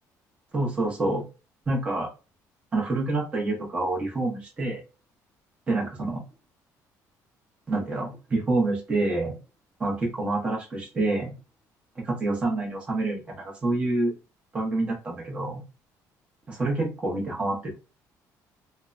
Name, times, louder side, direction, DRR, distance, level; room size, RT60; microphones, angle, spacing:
voice 1, 0.5-1.2 1.7-2.1 2.7-4.8 5.7-6.2 7.7-9.4 9.8-11.3 12.0-14.1 14.5-15.6 16.5-17.8, right 2 dB, 20° right, -2 dB, 0.9 m, -27 dB
2.7 x 2.1 x 2.5 m, 0.30 s
cardioid pair, 165°, 7 cm